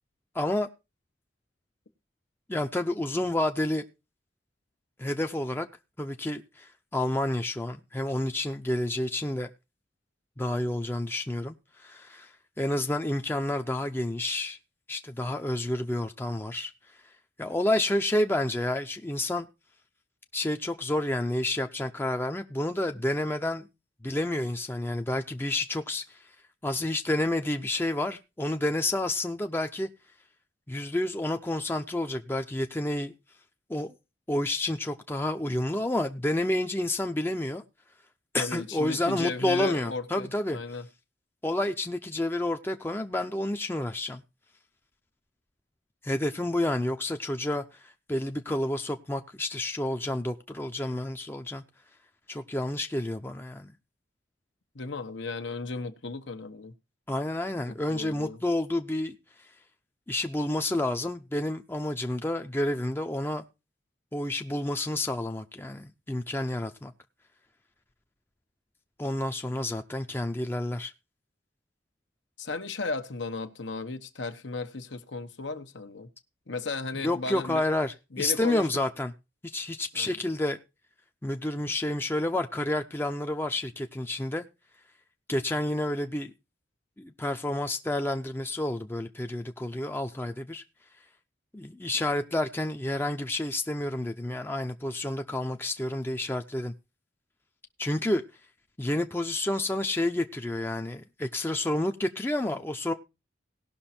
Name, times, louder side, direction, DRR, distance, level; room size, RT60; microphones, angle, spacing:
voice 1, 0.3-0.7 2.5-3.8 5.0-5.7 6.0-9.5 10.4-14.6 14.9-16.7 17.4-19.5 20.3-23.7 24.0-26.2 26.6-29.9 30.7-33.1 33.7-33.9 34.3-37.6 38.3-40.6 41.4-44.2 46.0-51.6 52.3-53.7 57.1-59.1 60.1-63.4 64.1-66.9 69.0-70.9 77.0-79.1 79.4-80.6 81.2-84.5 85.3-86.3 87.0-90.6 91.5-96.7 97.8-98.2 98.8-102.9, left 1 dB, 10° left, 0.6 m, -29 dB
voice 2, 38.4-40.9 54.7-56.7 57.6-58.4 72.4-76.1 76.5-77.6 78.1-78.7 79.9-80.2, left 3 dB, 80° left, 1.2 m, -35 dB
18.0 x 6.0 x 4.3 m
head